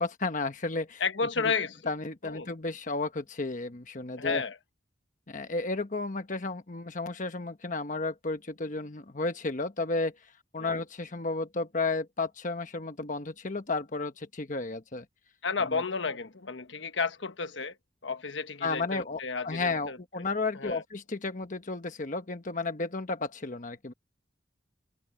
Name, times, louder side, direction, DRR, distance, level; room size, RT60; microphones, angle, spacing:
voice 1, 0.0-1.0 1.9-4.4 5.3-10.1 10.5-15.0 18.6-23.9, left 3 dB, 45° left, 1.2 m, -33 dB
voice 2, 1.0-1.9 2.2-2.5 4.2-4.6 10.6-10.7 15.4-17.8 18.0-20.0 20.5-20.8, left 5 dB, 80° left, 1.3 m, -32 dB
head